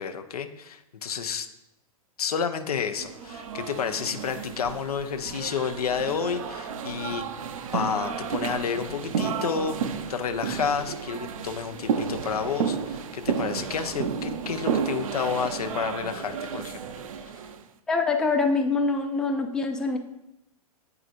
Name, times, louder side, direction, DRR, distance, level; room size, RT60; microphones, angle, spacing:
voice 1, 0.0-1.5 2.2-7.4 7.7-9.8 10.1-16.8, left 6 dB, 70° left, 7 dB, 0.6 m, -30 dB
sound 1, 2.9-17.6, right 6 dB, 60° right, 0.5 m, -32 dB
voice 2, 17.9-20.0, left 4 dB, 5° left, 3 dB, 0.4 m, -24 dB
8.1 x 4.8 x 2.5 m, 0.89 s
figure-of-eight pair, 105°, 20 cm